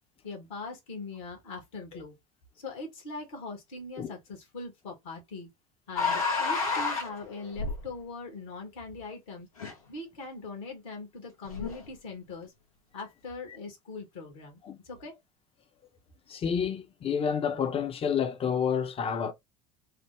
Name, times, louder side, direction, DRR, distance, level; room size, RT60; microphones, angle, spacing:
voice 1, 0.2-2.1 2.6-5.5 5.9-9.5 9.9-12.5 12.9-14.6 14.8-15.1, left 3 dB, 70° left, 1.5 m, -41 dB
sound 1, 5.9-8.0 9.6-9.7 11.4-11.9, left 4 dB, 90° left, 1.0 m, -30 dB
voice 2, 16.3-19.3, left 7 dB, 30° left, 0.7 m, -29 dB
3.3 x 2.1 x 3.1 m
hypercardioid pair, 70°, 18 cm